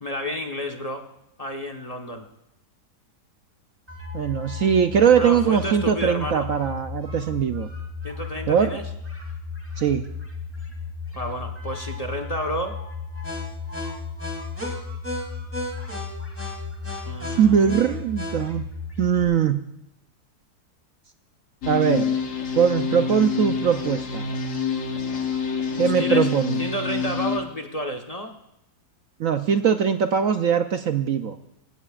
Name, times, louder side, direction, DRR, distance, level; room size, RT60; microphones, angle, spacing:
voice 1, 0.0-1.0 1.4-2.2 5.1-6.5 8.0-8.8 11.1-12.8 17.1-17.8 25.7-28.3, equal, 25° left, 5 dB, 1.1 m, -31 dB
sound 1, 3.9-19.2, left 4 dB, 10° right, 2.8 m, -34 dB
voice 2, 4.1-7.7 8.5-8.7 9.8-10.1 17.3-18.7 19.0-19.7 21.7-22.1 22.6-24.3 25.8-26.6 29.2-31.4, right 7 dB, 65° right, 7 dB, 1.0 m, -21 dB
sound 2, 21.6-27.4, left 6 dB, 55° left, 1.4 m, -27 dB
26.0 x 16.5 x 2.5 m, 0.84 s
omnidirectional pair, 1.7 m